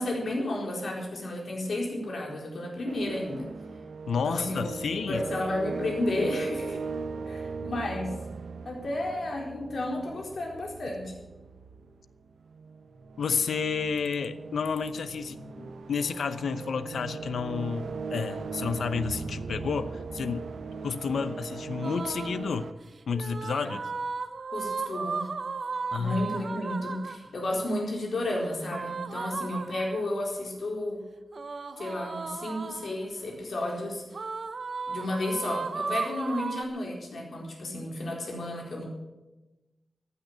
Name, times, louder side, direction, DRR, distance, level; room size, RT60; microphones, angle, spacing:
voice 1, 0.0-3.5 4.2-4.7 5.1-6.8 7.3-8.2 8.7-11.1 24.5-25.2 26.0-31.0 31.8-34.0 34.9-38.9, left 1 dB, 55° left, -1 dB, 4.0 m, -32 dB
sound 1, 2.9-22.7, right 4 dB, 80° right, 1.0 m, -39 dB
voice 2, 4.1-5.2 13.2-20.5 20.8-22.7 23.1-23.8 25.9-26.3, left 5 dB, 85° left, 13 dB, 0.8 m, -31 dB
sound 2, 21.8-22.5 23.1-27.3 28.7-30.2 31.3-33.0 34.1-36.6, right 4 dB, 45° right, 0.7 m, -35 dB
15.5 x 9.2 x 8.0 m, 1.1 s
wide cardioid pair, 180°, 0 cm